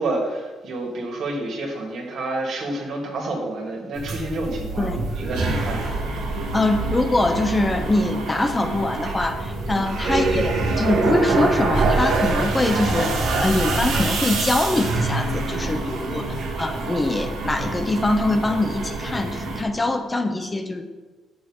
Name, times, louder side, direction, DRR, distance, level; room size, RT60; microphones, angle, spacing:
voice 1, 0.0-5.8 9.7-10.0 12.4-12.6 15.4-15.8 16.1-16.4, right 2 dB, 70° right, 0 dB, 1.9 m, -29 dB
sound 1, 3.9-19.6, right 3 dB, 85° right, 1.4 m, -25 dB
voice 2, 6.5-13.1 13.4-20.8, left 2 dB, 20° left, 7 dB, 0.7 m, -23 dB
sound 2, 14.8-16.8, left 1 dB, 50° left, 2.1 m, -36 dB
7.1 x 6.3 x 4.8 m, 1.3 s
cardioid pair, 90°, 0 cm